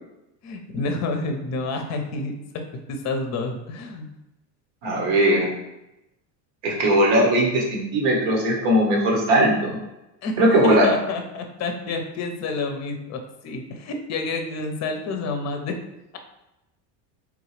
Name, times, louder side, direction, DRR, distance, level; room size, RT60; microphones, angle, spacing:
voice 1, 0.4-2.6 2.9-4.1 10.2-15.8, left 3 dB, 35° left, 5 dB, 0.6 m, -29 dB
voice 2, 4.8-5.5 6.6-9.8 10.4-10.9, right 1 dB, 65° right, -1 dB, 1.3 m, -19 dB
3.6 x 2.3 x 3.2 m, 0.93 s
hypercardioid pair, 85°, 50 cm